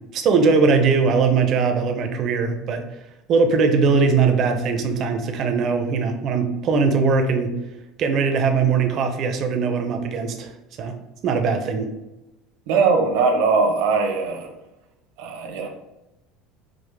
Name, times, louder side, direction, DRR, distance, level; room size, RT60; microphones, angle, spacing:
voice 1, 0.1-2.8 3.3-7.5 8.0-10.5 10.8-10.9 11.2-11.9, right 5 dB, 35° right, 6 dB, 0.4 m, -20 dB
voice 2, 12.7-14.5 15.2-15.7, right 4 dB, 75° right, 3 dB, 0.7 m, -20 dB
4.7 x 2.0 x 3.2 m, 0.96 s
cardioid pair, 175°, 0 cm